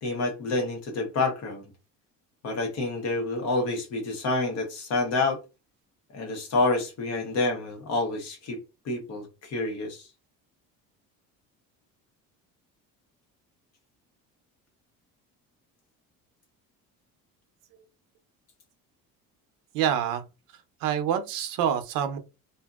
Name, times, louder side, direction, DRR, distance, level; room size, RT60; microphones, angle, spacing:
voice 1, 0.0-1.6 2.4-5.4 6.1-10.1, left 3 dB, 50° left, 1.1 m, -28 dB
voice 2, 19.7-20.2 20.8-22.2, right 9 dB, 80° right, 0.7 m, -26 dB
2.6 x 2.6 x 2.3 m
cardioid pair, 175°, 33 cm